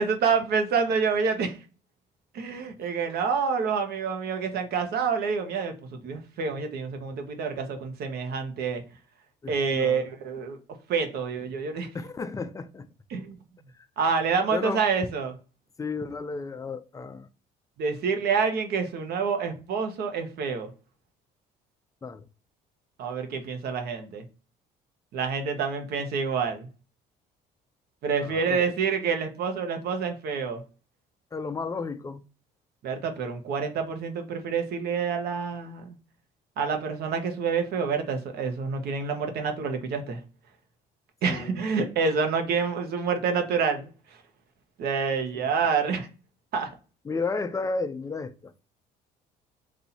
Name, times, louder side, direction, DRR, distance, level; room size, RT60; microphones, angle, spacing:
voice 1, 0.0-1.6 2.3-8.8 9.5-10.6 10.9-11.9 13.1-13.4 14.0-15.3 17.8-20.7 23.0-24.2 25.1-26.7 28.0-30.6 32.8-36.0 36.6-40.2 41.2-43.9 44.8-46.1 46.5-46.7, right 5 dB, 70° right, 1.1 m, -27 dB
voice 2, 9.4-10.1 11.9-12.9 14.5-14.8 15.8-17.3 22.0-22.2 28.2-28.6 31.3-32.2 41.3-41.6 45.3-45.5 47.0-48.5, left 4 dB, 20° left, 0.4 m, -33 dB
4.2 x 2.6 x 4.2 m
cardioid pair, 110°, 17 cm